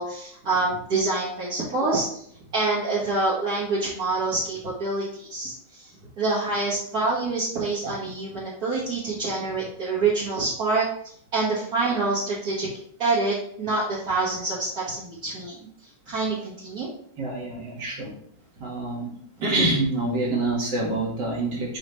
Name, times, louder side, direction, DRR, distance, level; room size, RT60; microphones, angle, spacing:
voice 1, 0.0-2.1 2.5-5.9 6.2-10.8 11.3-12.7 13.0-15.6 16.1-16.9 20.8-21.0, right 3 dB, 55° right, -9 dB, 2.2 m, -26 dB
voice 2, 17.2-18.2 18.6-19.1 19.4-21.8, right 2 dB, 70° right, -2 dB, 2.4 m, -26 dB
5.6 x 5.5 x 3.2 m, 0.63 s
omnidirectional pair, 2.0 m